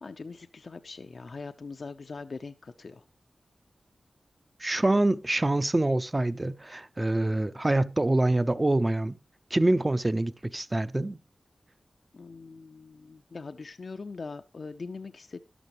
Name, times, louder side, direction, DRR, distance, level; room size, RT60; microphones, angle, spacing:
voice 1, 0.0-3.1 12.1-15.4, left 4 dB, 60° left, 0.6 m, -41 dB
voice 2, 4.6-9.2 9.5-11.2, right 2 dB, 25° right, 0.7 m, -25 dB
12.5 x 12.0 x 3.1 m
wide cardioid pair, 105°, 0 cm